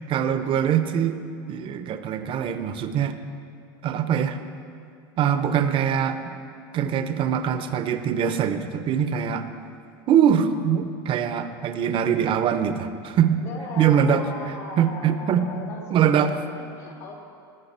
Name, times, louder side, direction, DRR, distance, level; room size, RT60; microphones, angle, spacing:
voice 1, 0.1-1.2 1.5-3.2 3.8-4.4 5.2-6.3 6.7-9.5 10.1-13.4 13.8-16.4, right 8 dB, 45° right, 10 dB, 0.8 m, -23 dB
voice 2, 13.4-17.2, left 3 dB, 85° left, -4 dB, 2.8 m, -38 dB
19.0 x 6.4 x 4.3 m, 2.4 s
hypercardioid pair, 100°, 12 cm